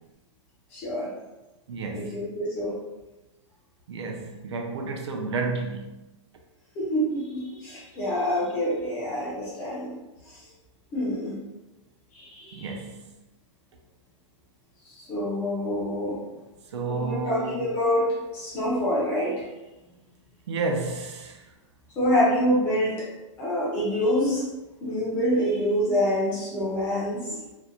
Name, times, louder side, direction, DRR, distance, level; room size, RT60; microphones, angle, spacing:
voice 1, 0.7-1.1 1.9-2.8 6.8-9.9 10.3-10.4 10.9-11.4 12.1-12.7 15.0-16.2 16.9-19.4 22.0-23.1 23.4-24.4 24.8-27.4, equal, 15° left, -6 dB, 0.4 m, -26 dB
voice 2, 1.7-2.2 3.9-6.0 12.5-13.1 16.7-17.7 20.5-21.4, right 3 dB, 60° right, 3 dB, 0.4 m, -31 dB
2.5 x 2.0 x 2.7 m, 1.0 s
hypercardioid pair, 170°, 16 cm